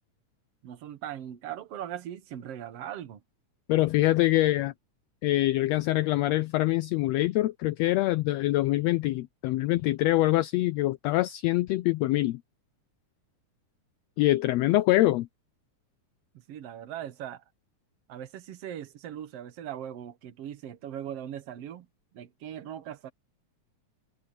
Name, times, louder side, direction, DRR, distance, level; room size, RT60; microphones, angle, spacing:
voice 1, 0.6-3.2 16.3-17.4 18.1-21.9 22.1-23.1, right 10 dB, 60° right, 2.1 m, -39 dB
voice 2, 3.7-4.7 5.2-12.4 14.2-15.3, left 16 dB, 90° left, 1.5 m, -24 dB
omnidirectional pair, 3.5 m